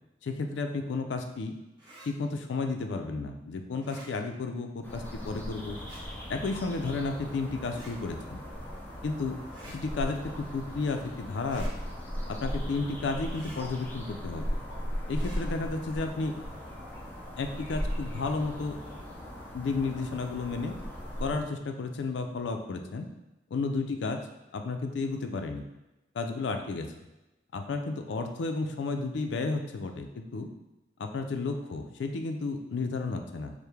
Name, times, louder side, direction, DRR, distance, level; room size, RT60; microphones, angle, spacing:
voice 1, 0.2-1.5 2.0-5.8 6.3-8.4 9.0-9.4 9.6-11.7 12.3-14.6 15.1-16.3 17.4-18.8 19.5-20.7 21.2-23.1 23.5-24.2 24.5-25.6 26.1-26.9 27.5-30.5 31.0-33.5, left 3 dB, 80° left, 5 dB, 0.4 m, -32 dB
sound 1, 1.8-2.1 3.7-4.1 5.7-6.0 7.6-7.9 9.5-9.8 11.4-11.7 13.3-13.6 15.1-15.4, right 1 dB, 25° right, 1.0 m, -50 dB
sound 2, 4.8-21.4, equal, 10° left, 0.5 m, -38 dB
sound 3, 6.5-6.7 7.6-7.7 8.5-8.7 10.3-10.5 12.4-12.6 13.6-13.9 14.7-14.9 16.1-16.3 16.8-17.0 17.3-17.4, equal, 45° right, 1.0 m, -50 dB
4.6 x 2.1 x 3.3 m, 1.0 s
head